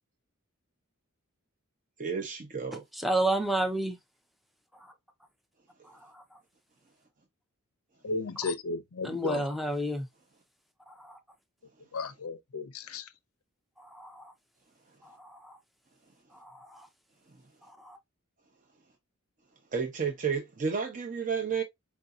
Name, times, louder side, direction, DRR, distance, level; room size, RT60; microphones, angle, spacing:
voice 1, 2.0-2.8 19.7-21.6, right 6 dB, 40° right, 0.7 m, -31 dB
voice 2, 2.9-4.0 6.0-6.2 9.0-10.1 10.9-11.2 13.8-14.3 15.0-15.6 16.4-16.9 17.8-18.0, right 1 dB, ahead, 0.5 m, -31 dB
voice 3, 8.0-9.4 11.9-13.0, left 3 dB, 90° left, 0.6 m, -34 dB
4.6 x 2.6 x 2.4 m
head